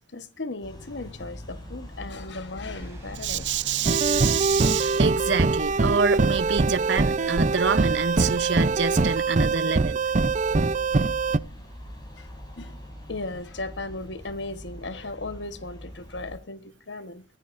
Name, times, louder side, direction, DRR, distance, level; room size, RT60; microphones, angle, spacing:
voice 1, 0.1-3.6 11.5-11.7 12.2-12.8 13.1-17.2, left 2 dB, 75° left, 1.3 m, -37 dB
sound 1, 0.6-16.4, equal, 25° left, 6.8 m, -42 dB
sound 2, 2.7-9.2, right 1 dB, 15° right, 5.1 m, -46 dB
voice 2, 3.2-10.0, right 6 dB, 80° right, 0.8 m, -27 dB
sound 3, 3.8-11.4, right 3 dB, 45° right, 0.6 m, -23 dB
23.5 x 14.0 x 2.6 m
head